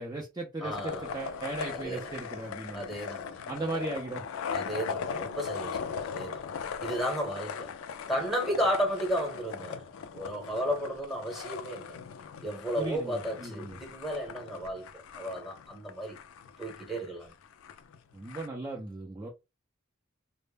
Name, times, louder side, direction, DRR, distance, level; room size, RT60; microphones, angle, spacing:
voice 1, 0.0-2.8 3.5-4.2 12.8-13.8 18.1-19.3, right 2 dB, 15° right, 0.4 m, -37 dB
voice 2, 0.6-1.1 1.7-2.2 2.7-3.8 4.5-6.4 6.8-7.7 8.1-12.0 12.4-14.9 15.1-16.2 16.6-17.3, equal, ahead, 0.8 m, -33 dB
sound 1, 0.7-18.5, left 6 dB, 70° left, 0.3 m, -39 dB
2.1 x 2.0 x 3.2 m
head